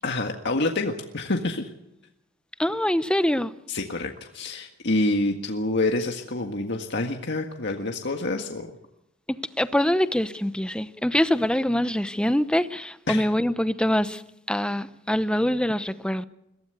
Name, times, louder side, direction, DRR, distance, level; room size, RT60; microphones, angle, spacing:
voice 1, 0.0-1.7 3.7-8.7 13.1-13.3, left 2 dB, 60° left, 1.8 m, -27 dB
voice 2, 2.6-3.5 9.6-14.2 14.5-16.2, left 1 dB, 5° left, 0.9 m, -24 dB
22.5 x 16.5 x 8.2 m
head